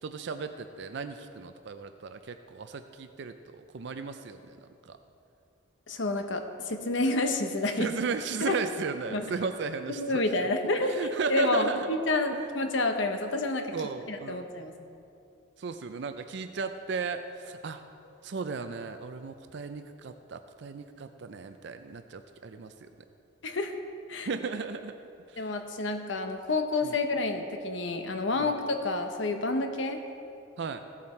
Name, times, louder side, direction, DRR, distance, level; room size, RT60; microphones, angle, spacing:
voice 1, 0.0-5.0 7.8-10.2 10.8-12.0 12.3-12.5 13.7-14.5 15.6-17.8 18.2-22.9 24.3-25.0 25.3-25.5 26.8-27.0 28.4-28.6 30.6-30.8, right 4 dB, 60° right, 8 dB, 0.4 m, -35 dB
voice 2, 5.9-7.9 8.4-8.6 9.1-9.3 10.0-11.0 11.3-13.7 14.1-14.7 23.4-23.7 24.1-24.3 25.4-30.0, left 2 dB, 70° left, 6 dB, 0.9 m, -29 dB
15.0 x 7.3 x 4.4 m, 2.6 s
head